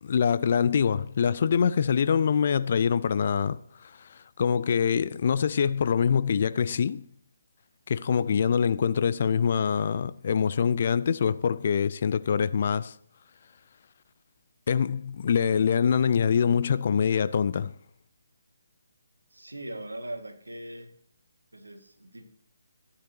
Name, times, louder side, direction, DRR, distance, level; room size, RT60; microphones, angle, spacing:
voice 1, 0.0-7.1 7.9-12.9 14.7-17.7, left 7 dB, 45° left, 0.4 m, -24 dB
voice 2, 19.3-20.9 21.5-22.2, right 1 dB, 85° right, 1.9 m, -40 dB
13.5 x 9.8 x 2.8 m
figure-of-eight pair, 145°, 0 cm